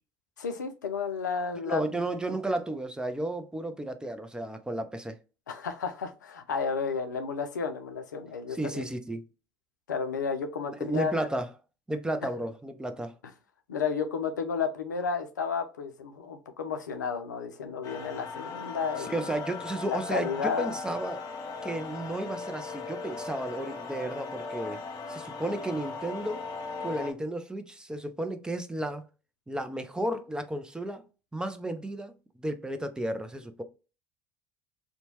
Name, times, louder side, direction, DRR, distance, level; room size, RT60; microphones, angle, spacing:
voice 1, 0.4-2.0 5.5-8.8 9.9-11.3 13.7-19.2 19.9-20.8, left 5 dB, 85° left, 0.4 m, -32 dB
voice 2, 1.7-5.2 8.5-9.2 10.8-11.5 11.9-13.1 19.0-20.3 20.6-21.2 21.6-24.8 25.1-26.4 26.8-29.1 29.5-31.0 31.3-33.6, right 1 dB, 10° right, 0.4 m, -33 dB
sound 1, 17.8-27.1, left 4 dB, 40° left, 0.7 m, -38 dB
2.8 x 2.1 x 2.9 m
hypercardioid pair, 70°, 10 cm